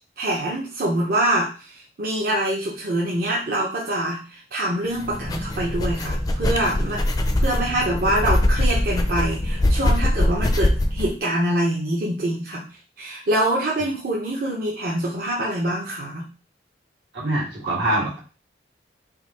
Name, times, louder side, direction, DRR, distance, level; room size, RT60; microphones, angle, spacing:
voice 1, 0.2-7.0 7.4-12.7 13.0-16.3, right 1 dB, 50° right, -4 dB, 0.8 m, -25 dB
sound 1, 5.0-11.1, left 1 dB, 20° left, 0.4 m, -22 dB
voice 2, 17.1-18.2, right 1 dB, 75° right, -3 dB, 1.6 m, -24 dB
3.8 x 2.5 x 4.1 m, 0.35 s
head